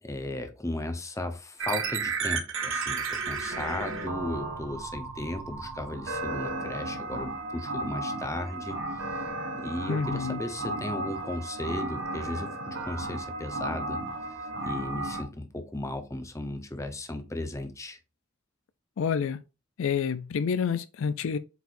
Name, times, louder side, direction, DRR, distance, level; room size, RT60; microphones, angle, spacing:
voice 1, 0.0-9.2 9.6-14.0 14.6-18.0, left 1 dB, 15° left, 0.8 m, -36 dB
sound 1, 1.6-15.2, right 3 dB, 65° right, 1.4 m, -34 dB
voice 2, 9.9-10.4 19.0-19.4 19.8-21.4, left 6 dB, 65° left, 0.4 m, -28 dB
8.0 x 4.6 x 2.6 m
head